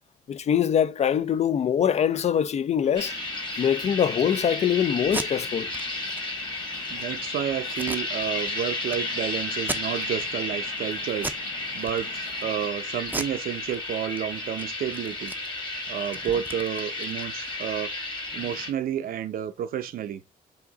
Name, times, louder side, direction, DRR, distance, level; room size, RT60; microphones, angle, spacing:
voice 1, 0.3-3.1 3.6-5.7, left 8 dB, 45° left, 0.4 m, -23 dB
Waves surf, 2.8-12.7, left 7 dB, 90° left, 0.9 m, -49 dB
sound 1, 2.9-18.7, left 2 dB, 30° left, 1.5 m, -33 dB
Packing tape duct tape, 5.0-5.3 5.7-5.8 6.1-6.2 6.7-7.0 7.7-8.5 8.9-9.0 9.6-10.3 10.6-10.8 11.2-11.5 11.8-12.4 13.0-14.2 14.5-14.6 14.9-17.6, right 2 dB, 10° right, 0.5 m, -36 dB
voice 2, 6.9-11.3 11.7-15.3 15.9-17.9 18.3-20.2, right 10 dB, 75° right, 0.6 m, -31 dB
4.9 x 2.7 x 3.9 m
cardioid pair, 90°, 15 cm